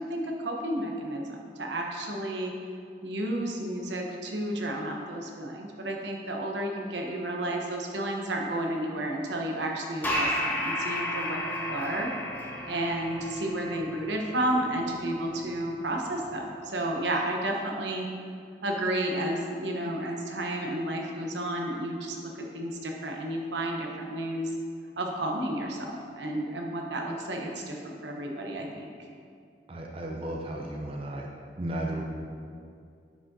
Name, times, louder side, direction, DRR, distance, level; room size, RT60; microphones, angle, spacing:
voice 1, 0.0-2.5 3.0-12.1 12.7-18.1 18.6-24.5 25.0-28.9, right 1 dB, 80° right, 1 dB, 0.9 m, -32 dB
sound 1, 10.0-17.0, equal, 10° left, 0.8 m, -34 dB
voice 2, 29.7-31.3 31.6-32.0, right 1 dB, 30° right, -1 dB, 0.6 m, -34 dB
9.3 x 6.1 x 2.7 m, 2.3 s
head